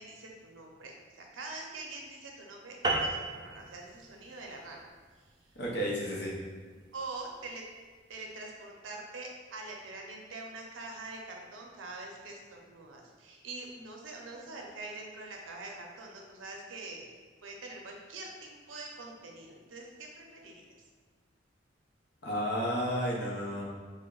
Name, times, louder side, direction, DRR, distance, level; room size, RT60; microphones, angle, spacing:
voice 1, 0.0-4.9 5.2-5.3 6.9-7.6 8.1-17.1 17.4-20.6, right 2 dB, 80° right, 0 dB, 0.6 m, -44 dB
sound 1, 2.8-7.6, right 2 dB, 20° right, 0.3 m, -36 dB
voice 2, 5.6-6.3 22.2-23.7, equal, 60° left, -3 dB, 0.8 m, -32 dB
3.4 x 2.1 x 3.7 m, 1.5 s
head